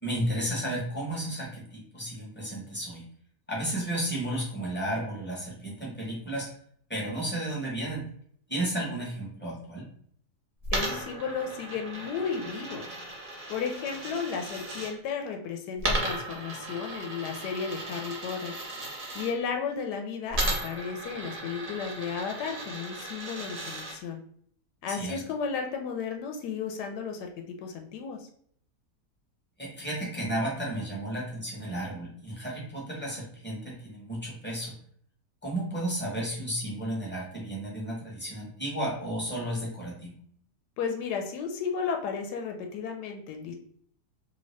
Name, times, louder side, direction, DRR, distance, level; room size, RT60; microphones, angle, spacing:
voice 1, 0.0-3.0 3.5-6.5 6.9-8.1 8.5-9.9 24.9-25.2 29.6-34.8 35.4-40.1, right 1 dB, 10° left, -5 dB, 0.7 m, -33 dB
Coin (dropping), 10.6-14.9 15.8-19.3 20.3-24.0, right 1 dB, 45° right, 0.7 m, -35 dB
voice 2, 10.7-12.9 13.5-18.6 19.1-24.2 24.8-28.3 40.8-43.5, left 6 dB, 85° left, 4 dB, 1.2 m, -34 dB
2.8 x 2.7 x 3.1 m, 0.63 s
omnidirectional pair, 1.7 m